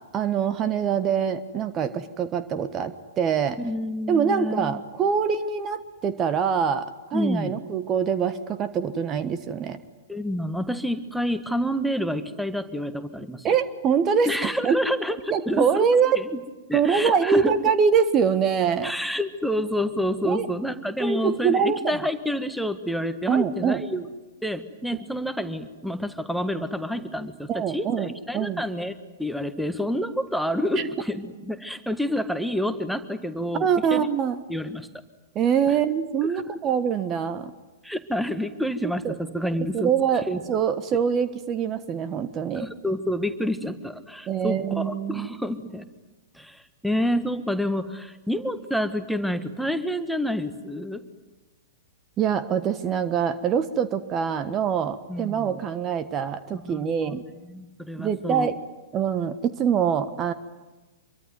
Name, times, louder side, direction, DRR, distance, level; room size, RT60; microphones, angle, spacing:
voice 1, 0.1-3.6 4.1-9.8 13.4-14.8 15.3-16.2 16.7-18.9 20.2-20.5 21.0-22.0 23.3-23.8 24.9-25.0 27.5-28.6 30.8-30.9 33.6-34.4 35.3-37.5 38.8-39.1 39.7-42.7 44.3-45.4 52.2-57.2 58.0-58.6 58.9-60.3, right 7 dB, 25° right, 11 dB, 1.3 m, -24 dB
voice 2, 3.6-4.8 7.1-7.6 10.1-13.5 14.3-15.9 16.2-16.4 16.7-17.5 18.8-24.0 24.4-34.1 34.5-34.9 35.7-35.8 36.3-36.5 37.8-39.9 40.3-40.4 42.6-45.9 46.3-51.0 55.1-55.6 56.5-58.5, equal, ahead, 9 dB, 1.6 m, -28 dB
26.0 x 24.0 x 9.5 m, 1.2 s
figure-of-eight pair, 105°, 0 cm